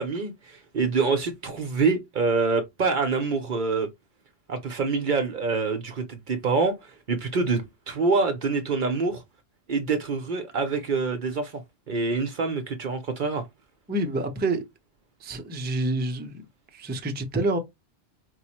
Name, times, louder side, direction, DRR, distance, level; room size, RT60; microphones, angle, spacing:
voice 1, 0.0-3.9 4.5-9.2 9.7-11.6 11.9-13.4, right 4 dB, 50° right, 0.7 m, -26 dB
voice 2, 13.9-14.6 15.2-16.4 16.7-17.6, right 2 dB, 10° right, 0.5 m, -27 dB
4.6 x 2.1 x 2.8 m
omnidirectional pair, 1.1 m